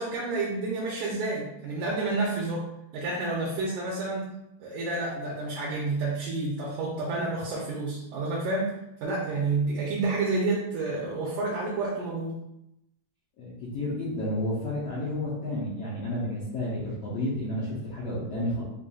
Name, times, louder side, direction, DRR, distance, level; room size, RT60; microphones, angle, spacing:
voice 1, 0.0-2.7 2.9-4.3 4.6-8.7 9.0-12.4, right 3 dB, 80° right, -5 dB, 1.9 m, -29 dB
voice 2, 13.4-18.6, left 1 dB, 80° left, -7 dB, 1.4 m, -31 dB
5.6 x 2.5 x 2.3 m, 0.85 s
omnidirectional pair, 3.9 m